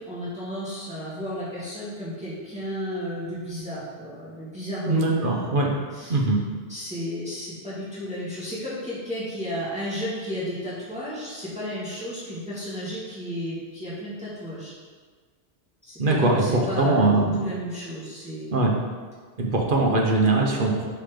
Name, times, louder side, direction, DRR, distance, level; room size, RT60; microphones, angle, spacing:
voice 1, 0.0-6.2 6.7-14.7 15.8-18.7, equal, 5° right, -10 dB, 2.1 m, -33 dB
voice 2, 4.9-5.7 6.1-6.4 16.0-17.4 18.5-18.7 19.4-20.9, right 2 dB, 55° right, 0 dB, 1.1 m, -21 dB
5.9 x 5.6 x 5.1 m, 1.5 s
omnidirectional pair, 1.1 m